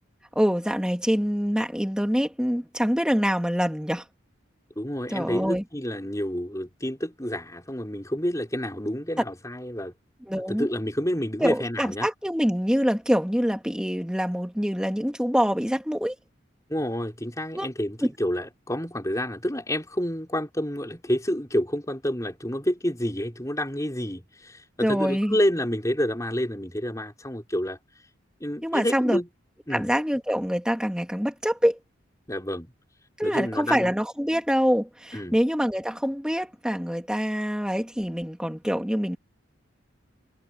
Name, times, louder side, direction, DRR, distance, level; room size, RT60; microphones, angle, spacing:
voice 1, 0.4-4.0 5.1-5.6 10.3-10.7 11.4-16.1 17.5-17.7 18.0-18.1 24.8-25.4 28.6-29.2 29.7-31.8 33.2-39.2, equal, 5° right, 2.2 m, -25 dB
voice 2, 4.8-9.9 10.3-12.1 16.7-27.8 28.4-29.3 29.7-29.9 32.3-32.7 33.2-33.9 35.1-35.4, equal, 15° left, 5.2 m, -29 dB
head